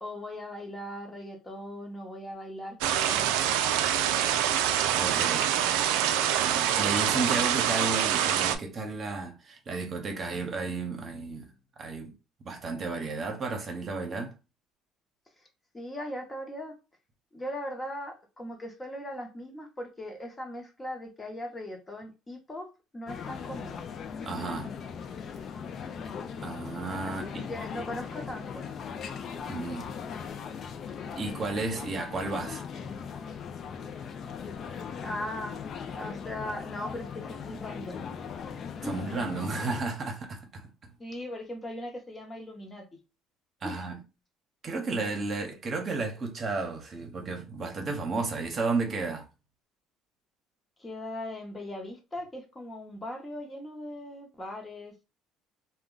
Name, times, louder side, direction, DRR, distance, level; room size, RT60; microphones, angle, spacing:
voice 1, 0.0-3.3 15.4-15.5 15.7-16.8 17.3-22.7 22.9-23.8 27.1-28.6 35.0-35.6 35.9-38.3 38.8-39.1 41.0-42.9 43.6-43.9 50.8-55.0, left 1 dB, 20° left, 0.9 m, -39 dB
sound 1, 2.8-8.6, right 10 dB, 85° right, 0.3 m, -25 dB
voice 2, 5.0-5.5 6.3-12.1 12.5-14.3 24.3-24.7 26.4-27.4 29.5-29.9 31.2-32.6 38.8-40.7 43.6-44.0 44.6-49.3, right 3 dB, 45° right, 0.8 m, -33 dB
sound 2, 23.1-39.8, left 6 dB, 50° left, 0.4 m, -39 dB
2.3 x 2.2 x 3.7 m
supercardioid pair, 90°, 0 cm